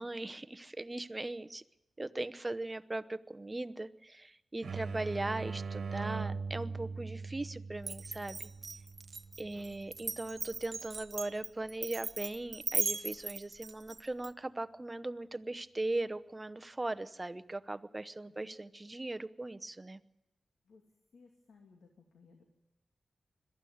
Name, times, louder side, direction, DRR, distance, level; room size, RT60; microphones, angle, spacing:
voice 1, 0.0-1.6 2.0-8.5 9.4-20.0, right 2 dB, 25° right, 11 dB, 0.9 m, -39 dB
sound 1, 4.6-10.1, right 4 dB, 70° right, 1.5 m, -41 dB
Glass, 7.8-14.3, right 4 dB, 50° right, 1.0 m, -38 dB
voice 2, 18.3-18.6 20.7-20.8 21.1-22.4, left 4 dB, 85° left, 2 dB, 2.7 m, -61 dB
22.0 x 13.5 x 9.4 m, 0.95 s
wide cardioid pair, 80°, 0 cm